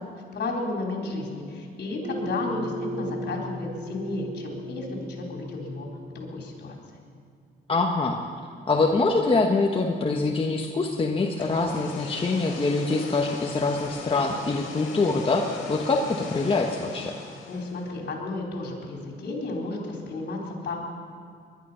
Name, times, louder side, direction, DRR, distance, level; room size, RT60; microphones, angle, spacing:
voice 1, 0.3-5.9 6.1-6.8 17.5-20.8, left 2 dB, 55° left, -1 dB, 4.1 m, -32 dB
sound 1, 2.0-7.2, equal, 75° right, 2.5 m, -37 dB
voice 2, 7.7-8.2 8.7-17.1, left 3 dB, 25° left, 1 dB, 1.2 m, -24 dB
sound 2, 11.2-18.0, left 5 dB, 75° left, 2.6 m, -40 dB
21.0 x 11.5 x 5.7 m, 2.2 s
cardioid pair, 90°, 20 cm